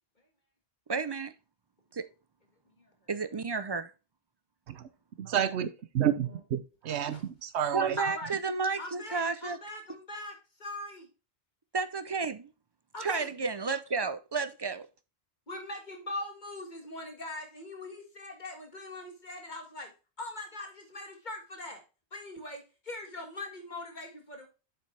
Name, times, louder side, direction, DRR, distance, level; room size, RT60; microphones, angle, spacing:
voice 1, 0.9-1.3 1.9-2.1 3.1-3.9 7.7-9.6 11.7-12.5 13.0-14.9, right 4 dB, 40° right, 0.4 m, -32 dB
voice 2, 5.2-5.7 5.9-6.6 6.9-8.0, right 9 dB, 80° right, 1.0 m, -29 dB
voice 3, 8.0-8.3 8.8-11.1 12.9-13.3 15.5-19.9 20.2-21.8 22.1-24.5, left 2 dB, 45° left, 1.9 m, -41 dB
7.5 x 6.0 x 3.3 m
omnidirectional pair, 1.1 m